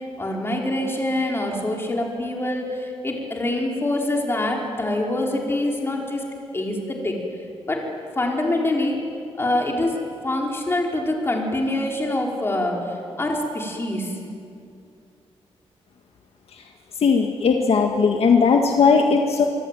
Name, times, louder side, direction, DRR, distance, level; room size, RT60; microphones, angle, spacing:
voice 1, 0.2-6.2 6.5-7.2 7.7-7.8 8.1-9.0 9.4-9.9 10.2-12.8 13.2-14.1, left 1 dB, 20° left, -1 dB, 4.9 m, -25 dB
voice 2, 17.0-19.5, left 5 dB, 65° left, 3 dB, 1.8 m, -18 dB
25.5 x 23.5 x 9.3 m, 2.5 s
wide cardioid pair, 140°, 11 cm